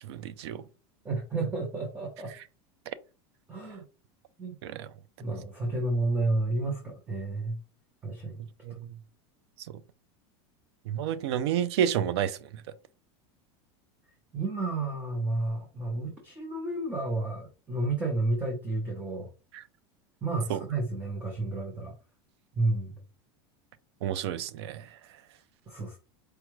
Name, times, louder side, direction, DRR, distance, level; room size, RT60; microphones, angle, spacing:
voice 1, 0.1-0.6 4.6-4.9 8.7-9.0 10.9-12.4 19.5-19.6 20.5-20.6 24.0-24.9, right 9 dB, 85° right, 0.4 m, -30 dB
voice 2, 1.0-2.3 3.5-3.8 4.4-4.5 5.2-7.6 8.0-8.4 14.3-19.3 20.2-21.9 22.6-22.9 25.7-26.0, right 2 dB, 10° right, 0.6 m, -31 dB
4.5 x 2.3 x 3.0 m
supercardioid pair, 165°, 14 cm